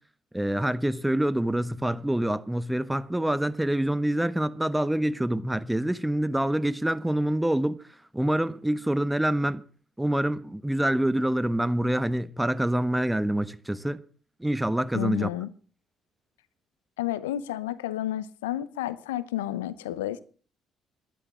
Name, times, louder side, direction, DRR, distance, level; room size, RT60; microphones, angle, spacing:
voice 1, 0.3-7.8 8.1-9.6 10.0-14.0 14.4-15.3, right 1 dB, 5° right, 1.3 m, -26 dB
voice 2, 14.9-15.5 17.0-20.2, left 13 dB, 85° left, 0.7 m, -31 dB
14.0 x 11.0 x 7.3 m
hypercardioid pair, 55°, 0 cm